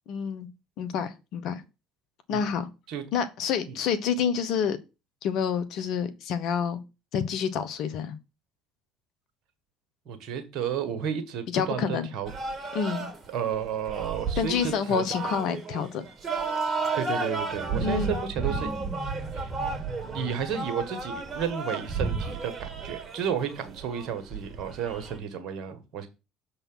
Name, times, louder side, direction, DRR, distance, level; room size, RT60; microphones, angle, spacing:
voice 1, 0.1-0.5 0.8-1.6 2.3-2.7 3.1-4.8 5.2-6.8 7.1-8.2 11.5-12.1 12.7-13.1 14.4-16.0 17.8-18.2, left 7 dB, 65° left, 1.0 m, -28 dB
voice 2, 10.0-12.3 13.3-15.0 16.9-18.7 19.3-19.5 20.0-26.1, right 8 dB, 60° right, 1.6 m, -32 dB
sound 1, 12.3-25.2, right 4 dB, 35° right, 1.8 m, -32 dB
6.9 x 4.1 x 5.6 m
hypercardioid pair, 65°, 0 cm